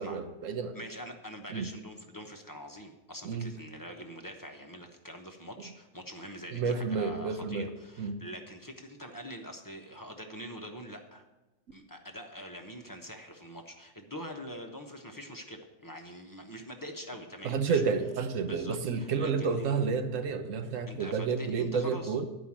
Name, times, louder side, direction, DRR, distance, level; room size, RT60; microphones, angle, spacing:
voice 1, 0.0-0.8 1.5-1.7 3.2-3.5 6.5-7.7 8.0-8.1 17.4-22.3, right 5 dB, 75° right, 8 dB, 1.2 m, -30 dB
voice 2, 0.7-11.2 11.7-17.8 18.4-19.8 20.9-22.2, equal, 20° left, 3 dB, 0.9 m, -44 dB
11.0 x 5.1 x 7.3 m, 1.1 s
omnidirectional pair, 1.3 m